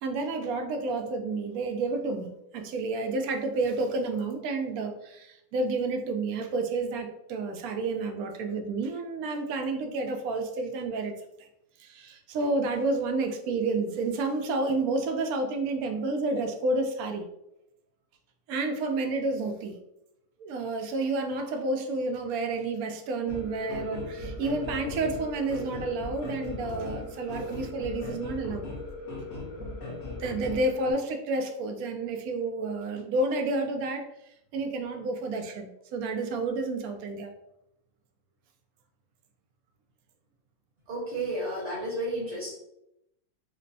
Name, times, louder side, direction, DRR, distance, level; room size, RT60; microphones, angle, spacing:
voice 1, 0.0-11.1 11.4-11.5 11.8-17.3 18.5-19.8 20.4-28.7 30.1-34.1 34.5-37.3, right 3 dB, 75° right, 5 dB, 1.0 m, -30 dB
sound 1, 23.3-30.9, left 2 dB, 55° left, 1.1 m, -38 dB
voice 2, 40.9-42.5, right 1 dB, 50° right, -4 dB, 1.1 m, -32 dB
5.1 x 2.1 x 2.6 m, 0.84 s
omnidirectional pair, 1.7 m